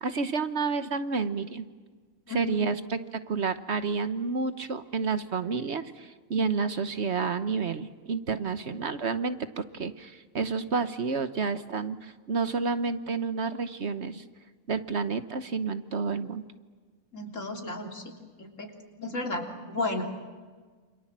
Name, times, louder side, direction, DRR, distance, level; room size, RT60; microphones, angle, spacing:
voice 1, 0.0-1.7 2.3-3.0 3.3-14.2 14.7-16.4, right 4 dB, 55° right, 11 dB, 1.3 m, -30 dB
voice 2, 2.3-2.6 17.1-18.1 18.4-18.7 19.0-20.0, left 2 dB, 65° left, 2 dB, 3.8 m, -33 dB
28.5 x 27.0 x 7.5 m, 1.5 s
omnidirectional pair, 1.4 m